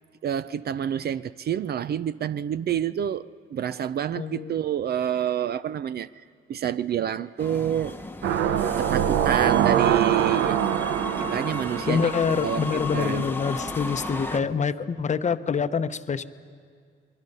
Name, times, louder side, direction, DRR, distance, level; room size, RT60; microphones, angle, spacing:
voice 1, 0.2-6.1 6.5-8.0 8.8-10.6 11.2-12.1 12.4-13.3 13.6-13.7, right 10 dB, 55° right, 15 dB, 0.5 m, -28 dB
voice 2, 4.2-4.5 11.9-16.2, left 6 dB, 35° left, 11 dB, 0.8 m, -26 dB
sound 1, 7.4-14.4, left 2 dB, 10° left, 1.0 m, -35 dB
sound 2, 8.2-13.1 13.5-13.6, right 9 dB, 90° right, 0.8 m, -24 dB
29.0 x 22.0 x 5.5 m, 2.1 s
cardioid pair, 90°, 20 cm